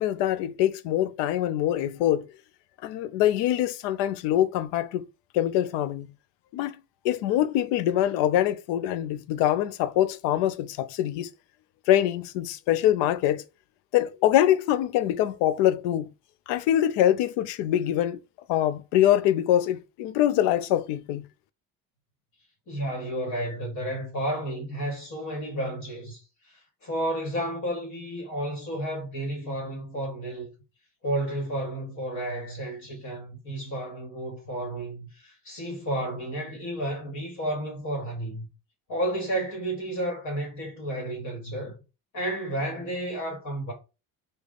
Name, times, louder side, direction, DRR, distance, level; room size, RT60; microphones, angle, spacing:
voice 1, 0.0-2.3 2.8-5.1 5.3-6.1 6.5-6.8 7.0-11.3 11.9-13.4 13.9-16.1 16.5-18.2 18.5-21.3, left 12 dB, 75° left, 0.5 m, -24 dB
voice 2, 22.7-26.2 26.5-30.5 31.0-38.5 38.9-41.8 42.1-43.7, right 1 dB, 40° left, 1.4 m, -32 dB
3.3 x 2.3 x 3.7 m
cardioid pair, 165°, 42 cm